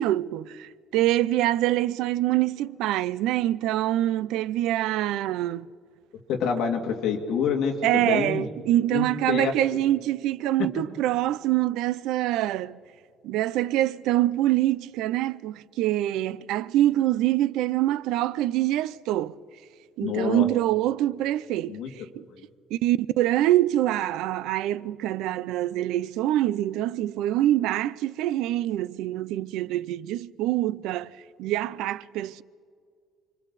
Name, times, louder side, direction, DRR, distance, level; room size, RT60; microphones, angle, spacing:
voice 1, 0.0-5.7 7.8-12.8 13.2-19.3 20.0-21.8 22.2-22.3 22.7-31.1 31.4-32.4, right 14 dB, 70° right, 0.5 m, -25 dB
voice 2, 6.3-8.5 8.9-9.5 20.0-20.5 21.7-21.9 22.4-22.5, left 6 dB, 50° left, 2.5 m, -27 dB
29.0 x 24.5 x 4.1 m
cardioid pair, 180°, 0 cm